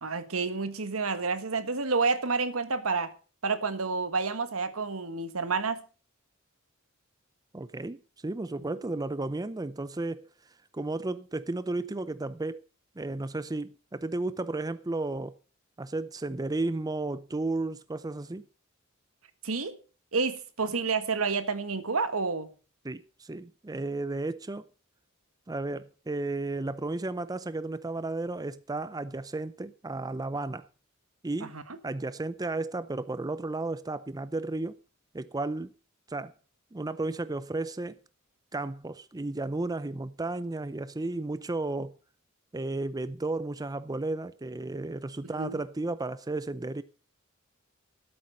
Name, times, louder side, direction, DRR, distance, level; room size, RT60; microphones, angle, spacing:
voice 1, 0.0-3.1 3.4-5.8 19.4-19.8 20.1-22.5 31.4-31.6 45.4-45.6, right 4 dB, 80° right, 1.5 m, -29 dB
voice 2, 7.5-10.3 10.7-12.6 13.0-15.4 15.8-18.4 22.8-24.6 25.5-30.7 31.2-31.5 31.8-34.8 35.1-35.7 36.1-36.3 36.7-38.0 38.5-42.0 42.5-46.8, right 2 dB, 20° right, 0.5 m, -33 dB
12.0 x 8.8 x 6.4 m
head